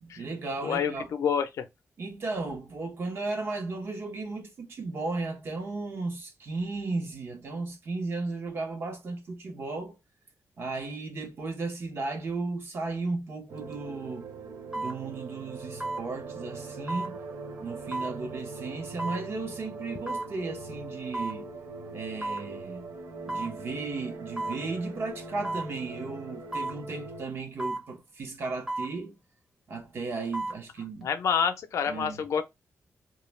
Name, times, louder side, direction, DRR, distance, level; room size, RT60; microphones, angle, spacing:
voice 1, 0.0-1.1 2.0-10.0 10.6-14.3 14.7-17.2 17.6-21.5 21.9-22.8 23.3-29.2 29.7-31.1 31.9-32.2, right 3 dB, 50° right, 0.8 m, -35 dB
voice 2, 0.6-1.7 31.0-32.4, left 7 dB, 80° left, 0.5 m, -28 dB
sound 1, 13.5-27.2, right 3 dB, 80° right, 0.5 m, -41 dB
sound 2, 13.6-13.7 14.7-15.0 15.8-16.0 16.9-17.1 17.9-18.2 19.0-19.2 20.1-20.3 21.1-21.4 22.2-22.5 23.3-23.5 24.4-24.6 25.4-25.7 26.5-26.8 27.6-27.9 28.7-28.9 30.1-30.6 31.0-31.1, right 2 dB, 10° right, 0.7 m, -33 dB
2.3 x 2.1 x 3.1 m
wide cardioid pair, 145°, 5 cm